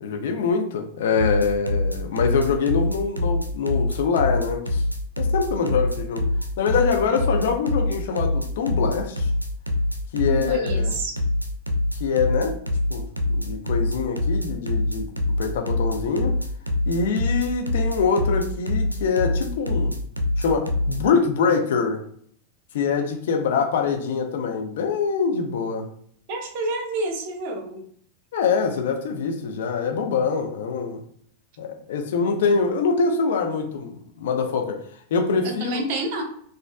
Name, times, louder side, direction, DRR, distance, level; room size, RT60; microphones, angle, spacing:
voice 1, 0.0-4.8 5.2-6.3 6.6-9.3 10.1-11.0 12.0-12.6 12.9-13.0 13.3-15.1 15.4-16.4 16.9-20.0 20.4-22.0 22.7-25.9 28.3-31.0 31.6-34.8 35.1-35.7, left 5 dB, 55° left, 4 dB, 0.6 m, -24 dB
sound 1, 1.2-21.0, left 2 dB, 85° right, 0.4 m, -24 dB
voice 2, 10.3-11.1 26.3-27.8 35.4-36.2, right 2 dB, 45° right, 4 dB, 0.8 m, -29 dB
4.0 x 2.5 x 2.3 m, 0.62 s
figure-of-eight pair, 90°, 0 cm